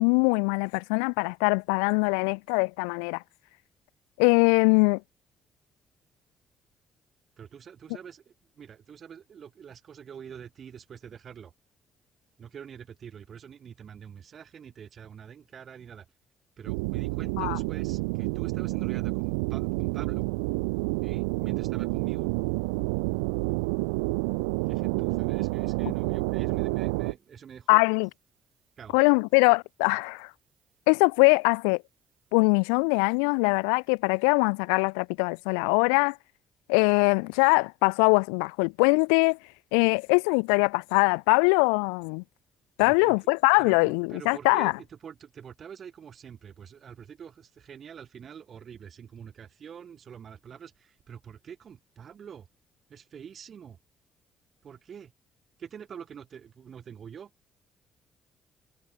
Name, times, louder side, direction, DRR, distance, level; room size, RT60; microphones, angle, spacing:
voice 1, 0.0-3.2 4.2-5.0 17.4-17.6 27.7-28.1 28.9-30.3 30.9-31.8 32.3-36.2 36.7-39.4 39.7-42.2 42.8-44.7, left 40 dB or more, 75° left, 0.6 m, -22 dB
voice 2, 7.4-11.5 12.4-16.1 16.6-20.3 21.0-22.3 24.7-27.8 28.8-29.0 42.8-43.2 43.6-52.5 52.9-53.8 54.6-55.1 55.6-57.3, right 8 dB, 50° right, 3.6 m, -45 dB
sound 1, 16.7-27.1, right 29 dB, 75° right, 0.5 m, -29 dB
figure-of-eight pair, 45°, 0 cm